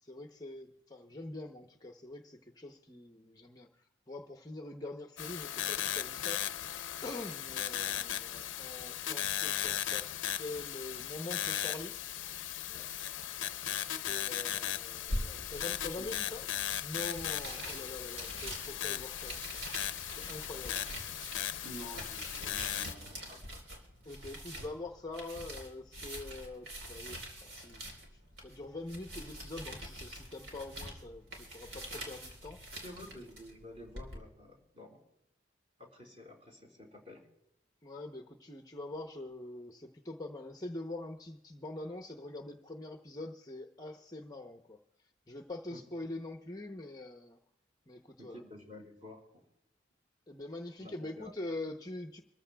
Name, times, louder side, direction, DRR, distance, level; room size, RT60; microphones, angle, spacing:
voice 1, 0.0-3.7 4.1-6.8 7.0-10.1 10.4-12.0 12.7-12.9 14.0-16.4 16.8-19.6 20.2-20.8 24.0-32.8 37.8-44.8 45.3-47.4 47.9-48.4 50.3-52.2, left 2 dB, 20° left, 3 dB, 0.7 m, -44 dB
sound 1, 5.2-22.9, left 11 dB, 80° left, 0.5 m, -37 dB
sound 2, 15.1-34.2, equal, 70° right, 3.6 m, -45 dB
voice 2, 15.7-16.1 21.6-23.4 32.8-35.0 35.8-37.2 45.7-45.8 48.2-49.4 50.8-51.3, left 1 dB, 30° right, 0 dB, 4.4 m, -50 dB
26.5 x 14.5 x 2.2 m, 0.84 s
head